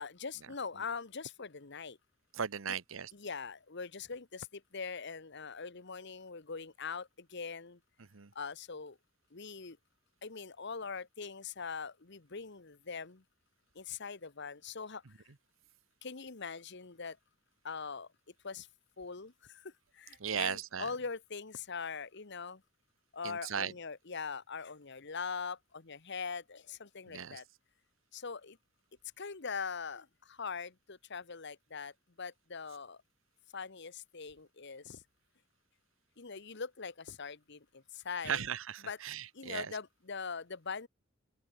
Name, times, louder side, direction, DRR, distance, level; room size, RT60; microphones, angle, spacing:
voice 1, 0.0-2.0 3.1-7.8 8.3-9.0 9.3-9.8 10.2-13.2 13.7-15.0 16.0-17.2 17.6-18.1 18.4-18.7 19.0-22.6 23.1-27.4 28.1-28.6 29.2-33.0 33.5-35.0 36.2-38.4 38.8-39.0 39.3-40.9, left 5 dB, 60° left, 1.3 m, -42 dB
voice 2, 2.3-3.1 8.1-8.3 20.2-20.9 23.2-23.7 27.1-27.4 38.2-39.7, right 7 dB, 80° right, 1.0 m, -37 dB
open air
head